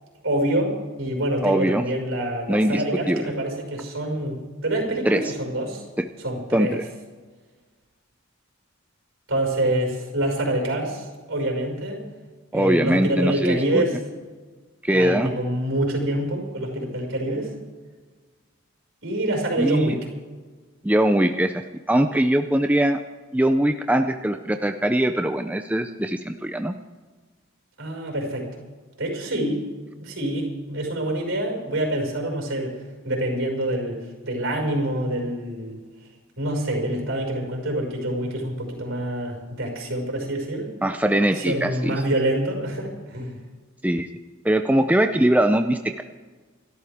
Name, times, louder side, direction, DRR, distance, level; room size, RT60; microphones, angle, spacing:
voice 1, 0.2-5.8 6.2-6.8 9.3-12.0 12.5-14.0 14.9-17.5 19.0-20.0 27.8-28.6 29.0-29.6 30.0-32.7 33.0-35.8 36.4-40.7 41.3-43.4, right 1 dB, 60° right, 0 dB, 5.7 m, -26 dB
voice 2, 1.4-1.8 2.5-3.3 5.1-5.2 6.0-6.1 6.5-6.9 12.5-13.8 14.8-15.3 19.6-20.0 20.8-21.6 21.9-23.0 23.3-26.7 40.8-42.0 43.8-44.1 44.4-46.0, right 1 dB, 5° right, 6 dB, 0.5 m, -21 dB
28.0 x 13.0 x 3.6 m, 1.4 s
head